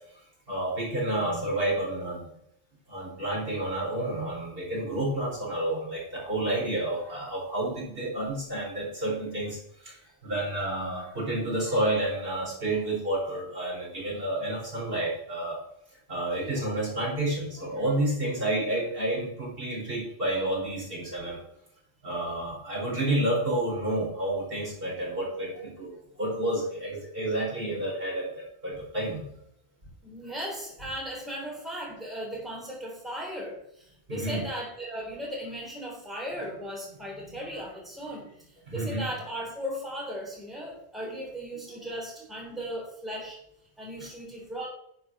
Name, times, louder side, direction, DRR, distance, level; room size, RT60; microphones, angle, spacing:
voice 1, 0.5-2.3 2.9-10.0 10.2-15.6 16.1-21.4 22.0-29.3 34.1-34.4 38.7-39.1, right 1 dB, 55° right, -4 dB, 4.9 m, -30 dB
voice 2, 30.0-38.3 38.7-43.4 43.8-44.7, equal, ahead, -3 dB, 3.6 m, -37 dB
11.0 x 6.1 x 6.1 m, 0.73 s
omnidirectional pair, 1.2 m